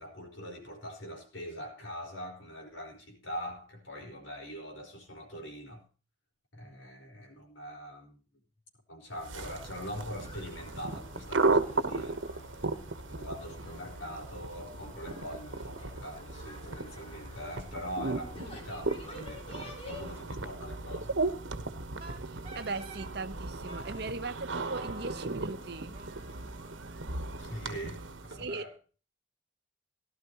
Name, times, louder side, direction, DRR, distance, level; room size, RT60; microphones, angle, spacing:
voice 1, 0.0-5.8 6.5-8.2 8.9-12.2 13.1-21.2 27.4-28.7, equal, 85° left, 4.7 m, -43 dB
sound 1, 9.2-28.5, right 3 dB, 90° right, 1.1 m, -36 dB
sound 2, 9.3-20.4, left 2 dB, 30° left, 2.5 m, -51 dB
Wind instrument woodwind instrument, 22.0-23.1 23.7-24.1 24.7-27.7, right 2 dB, 30° right, 2.3 m, -50 dB
voice 2, 22.2-26.0 28.4-28.6, right 3 dB, 60° right, 1.0 m, -39 dB
16.5 x 12.0 x 3.0 m
head